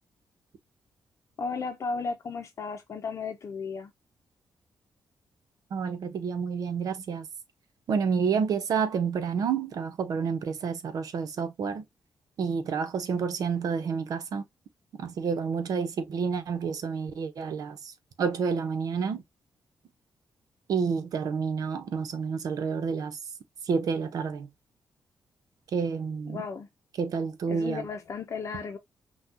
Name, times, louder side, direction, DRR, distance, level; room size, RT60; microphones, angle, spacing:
voice 1, 1.4-3.9 26.3-26.7 27.5-28.8, left 5 dB, 50° left, 0.7 m, -34 dB
voice 2, 5.7-7.3 7.9-11.8 12.4-14.4 15.0-17.8 18.2-19.2 20.7-23.2 23.7-24.5 25.7-26.4 27.0-27.8, right 6 dB, 70° right, 0.9 m, -29 dB
5.8 x 2.4 x 2.9 m
cardioid pair, 115°, 7 cm